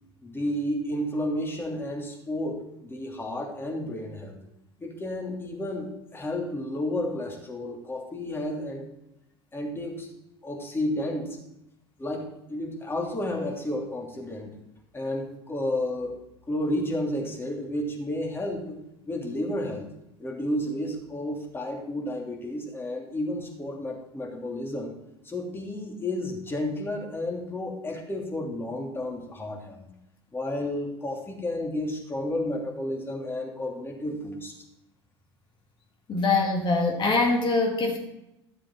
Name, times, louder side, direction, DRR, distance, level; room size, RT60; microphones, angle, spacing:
voice 1, 0.2-4.4 4.8-8.9 9.5-10.1 10.4-11.4 12.0-14.6 14.9-16.2 16.5-18.8 19.1-19.9 20.2-24.9 25.2-29.9 30.3-34.5, left 1 dB, 15° left, 0 dB, 3.0 m, -31 dB
voice 2, 36.1-38.0, left 3 dB, 35° left, 1 dB, 2.5 m, -23 dB
13.0 x 7.3 x 4.6 m, 0.87 s
figure-of-eight pair, 75°, 14 cm